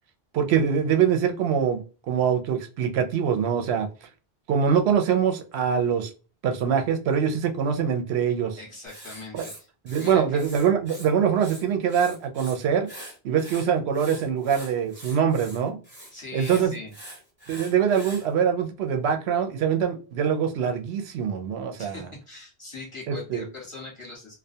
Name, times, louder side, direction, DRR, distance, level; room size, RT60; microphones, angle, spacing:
voice 1, 0.3-3.9 4.5-6.1 6.4-8.6 9.4-9.5 9.9-12.9 13.2-15.8 16.3-16.7 17.5-22.0 23.1-23.5, right 7 dB, 85° right, 0.8 m, -24 dB
voice 2, 8.6-9.7 10.0-10.5 16.1-16.9 21.8-24.4, left 3 dB, 30° left, 1.1 m, -41 dB
Writing, 8.9-11.1 11.4-12.6 12.9-18.3, right 1 dB, 10° right, 1.1 m, -44 dB
2.3 x 2.2 x 2.6 m
omnidirectional pair, 1.1 m